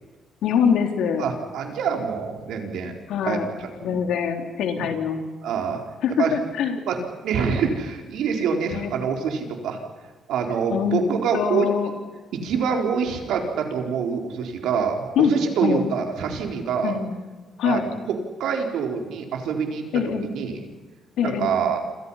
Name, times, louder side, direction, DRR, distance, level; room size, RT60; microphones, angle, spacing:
voice 1, 0.4-1.3 3.1-3.5 3.8-5.3 6.0-6.8 8.7-8.9 10.7-11.0 11.3-11.9 15.2-15.3 15.6-15.8 16.8-17.2 17.6-17.9 19.9-20.3 21.2-21.5, left 7 dB, 80° left, 4 dB, 3.6 m, -23 dB
voice 2, 1.2-2.9 3.2-4.0 4.8-4.9 5.4-5.8 6.2-6.3 6.9-7.0 7.2-9.8 10.3-11.7 12.3-17.0 17.6-17.8 18.1-19.8 20.3-20.6 21.2-21.8, right 6 dB, 80° right, 3 dB, 4.4 m, -25 dB
27.5 x 27.5 x 5.8 m, 1.3 s
cardioid pair, 90°, 0 cm